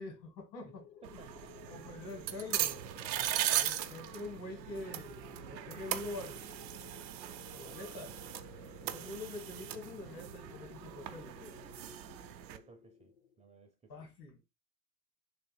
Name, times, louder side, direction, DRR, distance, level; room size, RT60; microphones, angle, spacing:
voice 1, 0.0-0.8 1.7-2.8 3.6-6.5 7.5-8.1 8.9-11.6 13.9-14.4, left 2 dB, 75° left, 2.2 m, -45 dB
sound 1, 0.7-13.5, left 9 dB, 35° left, 0.6 m, -56 dB
voice 2, 1.0-1.7 8.8-9.1 12.2-13.1 13.4-14.1, right 4 dB, 15° right, 0.5 m, -58 dB
sound 2, 1.0-12.6, right 12 dB, 85° right, 0.6 m, -39 dB
3.5 x 2.9 x 4.2 m
hypercardioid pair, 90°, 50 cm